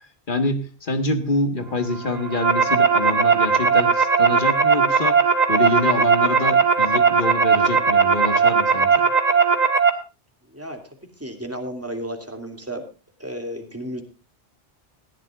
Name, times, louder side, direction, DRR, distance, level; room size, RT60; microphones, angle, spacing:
voice 1, 0.3-5.2 5.5-9.1, left 2 dB, 45° left, 9 dB, 1.8 m, -26 dB
sound 1, 2.1-9.9, right 5 dB, 40° right, 1.7 m, -18 dB
voice 2, 11.2-12.8 13.2-14.0, right 1 dB, 10° right, 5 dB, 2.6 m, -32 dB
19.5 x 14.0 x 2.4 m, 0.33 s
omnidirectional pair, 1.1 m